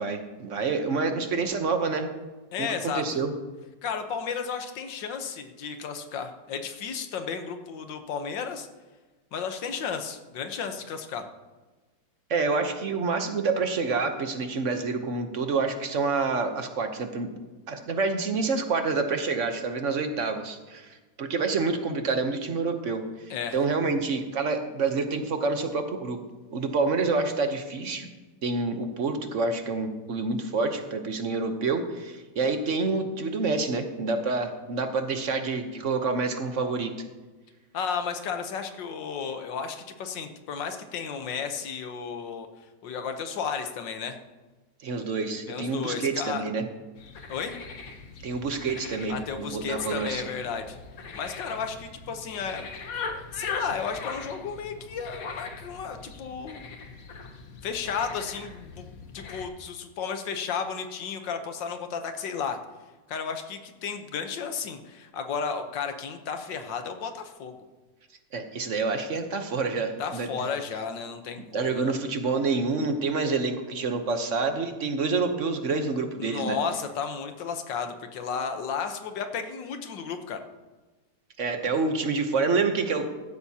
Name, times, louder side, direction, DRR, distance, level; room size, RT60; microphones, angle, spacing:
voice 1, 0.0-2.1 2.6-2.7 2.9-3.3 12.3-17.3 17.7-26.2 26.5-28.1 28.4-36.9 44.8-46.6 48.2-50.2 68.3-70.3 71.5-76.6 81.4-83.1, right 4 dB, 50° right, 7 dB, 1.1 m, -28 dB
voice 2, 2.5-3.2 3.8-8.7 9.3-11.2 23.3-23.6 37.7-42.5 42.8-44.2 45.5-46.4 47.3-47.6 49.1-50.8 51.1-52.7 53.1-56.6 57.6-62.6 63.1-67.6 70.0-72.0 76.2-80.4, left 6 dB, 80° left, 7 dB, 1.7 m, -33 dB
sound 1, 47.0-59.4, left 5 dB, 55° left, 1.4 m, -40 dB
15.0 x 13.0 x 2.8 m, 1.2 s
omnidirectional pair, 1.9 m